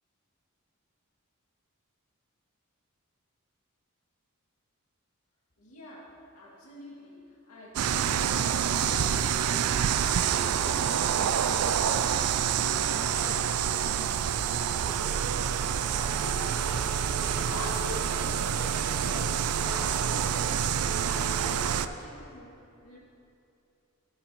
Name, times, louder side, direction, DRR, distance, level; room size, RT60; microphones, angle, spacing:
voice 1, 5.6-14.5 14.8-19.3 19.6-20.6 20.8-22.5 22.8-23.0, left 1 dB, 90° left, -6 dB, 2.4 m, -44 dB
sound 1, 7.7-21.9, right 8 dB, 85° right, 0.4 m, -27 dB
16.5 x 7.3 x 3.1 m, 2.8 s
head